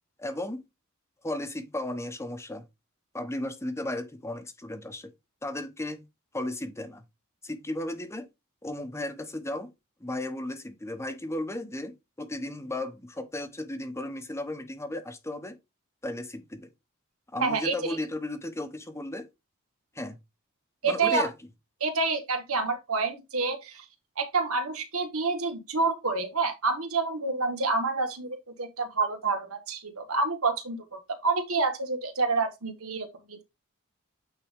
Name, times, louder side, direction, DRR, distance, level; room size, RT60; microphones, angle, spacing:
voice 1, 0.2-0.6 1.2-2.6 3.1-5.1 5.4-6.0 6.3-7.0 7.4-8.3 8.6-9.7 10.0-15.6 16.0-16.7 17.3-19.3 19.9-20.2 20.8-21.3, left 1 dB, 15° left, 0.9 m, -35 dB
voice 2, 17.4-18.0 20.8-21.3 21.8-23.8 24.2-33.4, right 4 dB, 80° right, 1.5 m, -28 dB
8.8 x 3.8 x 3.6 m
head